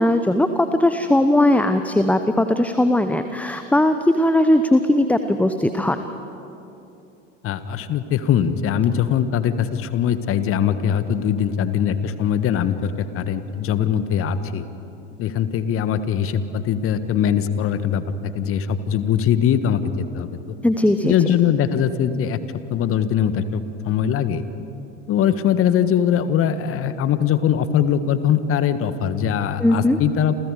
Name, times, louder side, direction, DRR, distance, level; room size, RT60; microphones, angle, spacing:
voice 1, 0.0-6.0 20.6-21.1 29.6-30.0, left 1 dB, 5° left, 9 dB, 0.9 m, -18 dB
voice 2, 7.4-14.6 15.2-20.5 21.0-22.4 22.7-24.4 25.1-30.3, left 9 dB, 35° left, 12 dB, 1.5 m, -21 dB
30.0 x 28.0 x 4.9 m, 2.8 s
figure-of-eight pair, 80°, 37 cm